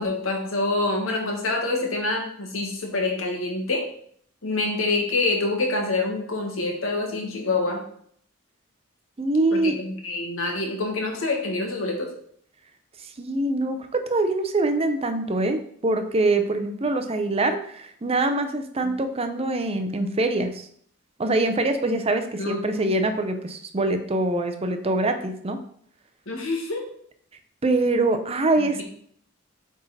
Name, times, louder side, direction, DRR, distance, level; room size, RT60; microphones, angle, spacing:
voice 1, 0.0-3.9 4.4-7.9 9.5-12.1 22.4-23.0 26.3-26.9 28.6-28.8, left 2 dB, 80° left, 2 dB, 1.5 m, -26 dB
voice 2, 9.2-9.8 13.2-20.7 21.2-25.6 27.6-28.8, right 2 dB, 30° right, 7 dB, 0.6 m, -24 dB
7.9 x 3.7 x 4.1 m, 0.63 s
head